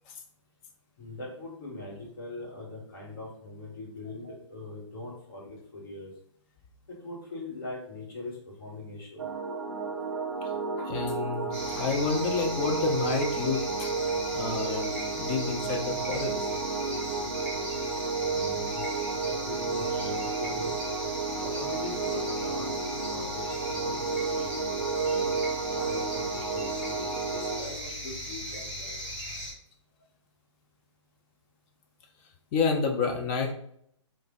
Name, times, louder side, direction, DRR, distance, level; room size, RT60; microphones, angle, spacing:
voice 1, 1.0-6.1 6.9-9.3 18.2-18.8 19.2-20.7 21.4-24.5 24.8-25.3 25.7-29.0, left 2 dB, 45° left, -3 dB, 1.2 m, -41 dB
sound 1, 9.2-27.6, right 4 dB, 60° right, 0.5 m, -32 dB
voice 2, 10.8-13.9 14.3-16.5 24.5-24.6 32.5-33.5, left 5 dB, 20° left, 3 dB, 0.4 m, -30 dB
sound 2, 11.5-29.5, equal, ahead, 1.2 m, -38 dB
3.2 x 2.1 x 3.6 m, 0.69 s
figure-of-eight pair, 130°, 16 cm